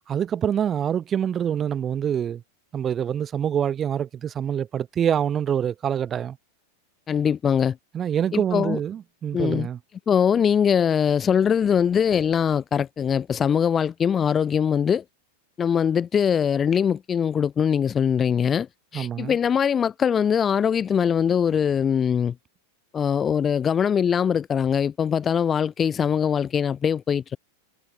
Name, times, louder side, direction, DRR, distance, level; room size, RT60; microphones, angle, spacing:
voice 1, 0.1-2.4 2.7-6.4 7.9-9.8 18.9-19.4, right 9 dB, 25° right, 3.1 m, -25 dB
voice 2, 7.1-7.8 8.3-8.8 9.3-9.7 10.1-15.0 15.6-18.7 18.9-22.3 22.9-27.4, left 7 dB, 20° left, 1.4 m, -22 dB
figure-of-eight pair, 90°, 0 cm